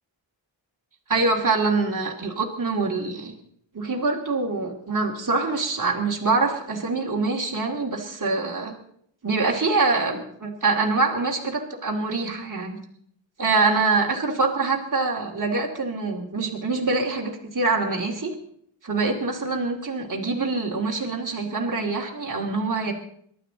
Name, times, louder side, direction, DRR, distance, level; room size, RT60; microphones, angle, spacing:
voice 1, 1.1-3.3 3.7-8.7 9.2-12.8 13.4-18.3 18.8-22.9, right 3 dB, 40° right, -1 dB, 2.5 m, -25 dB
23.5 x 12.0 x 3.9 m, 0.65 s
wide cardioid pair, 85°, 48 cm